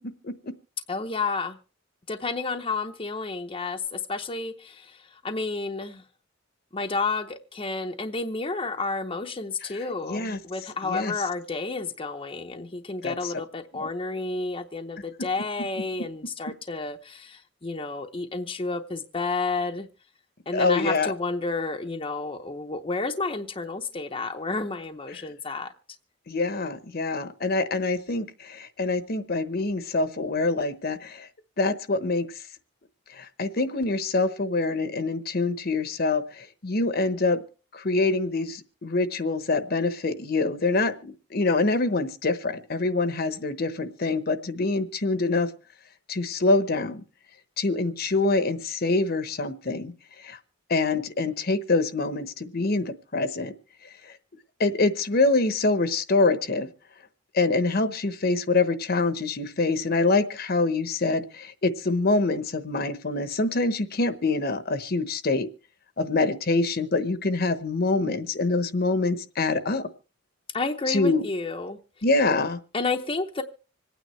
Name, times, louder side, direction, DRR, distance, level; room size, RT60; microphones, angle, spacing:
voice 1, 0.9-1.6 2.1-6.0 6.7-19.9 20.5-25.7 70.5-71.8 72.7-73.4, left 3 dB, 25° left, 3 dB, 0.7 m, -31 dB
voice 2, 10.1-10.4 10.8-11.1 13.0-13.3 13.7-13.9 20.5-21.1 26.3-31.3 31.6-32.3 33.2-37.4 37.7-45.5 46.1-47.0 47.6-49.9 50.2-50.4 50.7-53.5 54.6-56.7 57.3-65.5 66.0-69.9 70.9-71.3 72.0-72.6, left 3 dB, 50° left, 11 dB, 1.0 m, -25 dB
26.0 x 9.3 x 3.2 m, 0.36 s
head